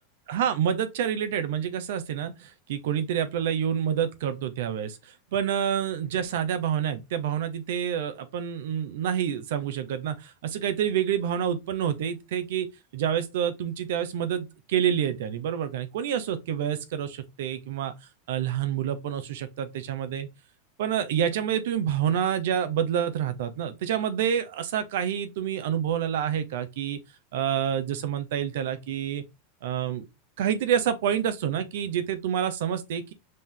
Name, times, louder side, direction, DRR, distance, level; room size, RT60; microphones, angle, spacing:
voice 1, 0.3-5.0 5.3-12.7 12.9-17.9 18.3-20.3 20.8-27.0 27.3-29.2 29.6-30.0 30.4-33.1, right 9 dB, 75° right, 0.8 m, -28 dB
5.3 x 2.6 x 3.7 m
supercardioid pair, 120°, 0 cm